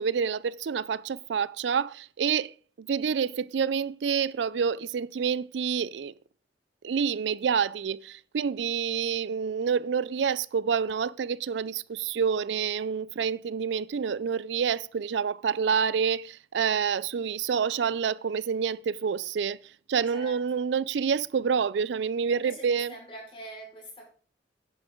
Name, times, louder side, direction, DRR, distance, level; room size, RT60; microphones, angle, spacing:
voice 1, 0.0-6.1 6.8-19.6 19.9-22.9, right 6 dB, 75° right, 0.4 m, -28 dB
voice 2, 20.1-20.7 22.3-24.1, equal, 30° left, 5.1 m, -44 dB
11.0 x 9.7 x 3.8 m
head